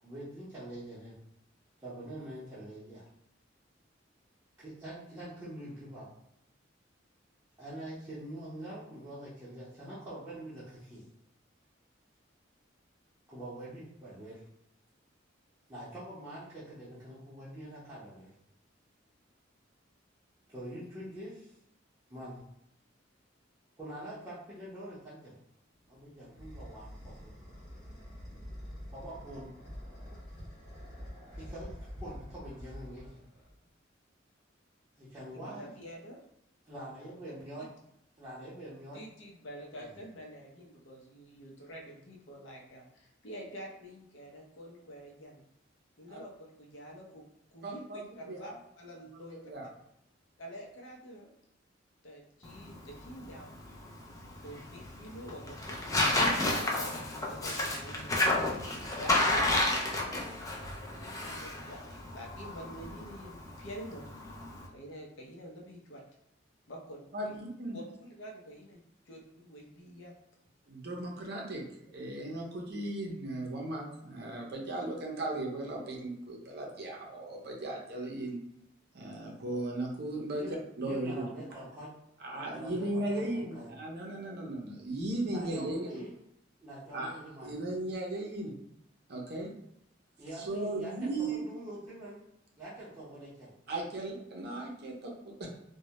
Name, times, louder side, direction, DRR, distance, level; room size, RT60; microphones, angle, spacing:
voice 1, 0.0-1.1 1.8-3.1 4.6-6.1 7.6-11.1 13.3-14.4 15.7-18.3 20.5-21.5 22.1-22.4 23.8-25.4 25.9-27.3 28.9-29.5 31.4-33.2 35.0-35.7 36.7-37.7 38.2-39.0 39.8-39.9 80.3-81.9 82.5-83.7 85.3-86.1 86.6-87.6 90.2-92.2 92.6-93.5, right 1 dB, 15° right, -11 dB, 0.6 m, -45 dB
sound 1, 25.8-33.7, equal, 55° left, 1.1 m, -46 dB
voice 2, 35.3-36.2 37.6-37.7 38.9-45.4 46.0-47.2 47.5-48.5 48.8-49.4 50.4-51.3 52.0-53.6 54.4-55.8 56.4-58.4 59.0-59.4 60.6-61.8 62.1-64.1 64.7-66.0 66.7-67.3 67.7-70.1, equal, 75° left, -1 dB, 0.6 m, -47 dB
voice 3, 47.6-48.6 49.3-49.7 67.1-67.8 70.7-78.4 78.9-80.4 80.8-81.5 82.2-86.0 86.9-87.1 87.4-88.5 89.1-89.5 90.3-91.4 93.7-95.5, right 2 dB, 55° right, -1 dB, 0.6 m, -37 dB
Tearing, 52.4-64.7, left 2 dB, 20° left, 0.3 m, -32 dB
2.2 x 2.0 x 2.8 m, 0.77 s
head